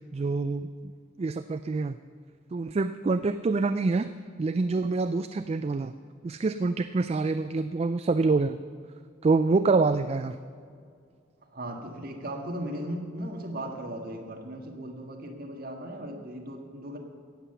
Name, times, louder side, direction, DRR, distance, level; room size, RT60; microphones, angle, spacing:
voice 1, 0.1-0.7 1.2-2.0 2.5-4.1 4.4-5.9 6.2-8.6 9.2-10.4, right 3 dB, 30° right, 11 dB, 0.3 m, -26 dB
voice 2, 11.5-17.0, right 1 dB, 50° right, 2 dB, 1.7 m, -37 dB
17.0 x 7.6 x 6.8 m, 2.2 s
head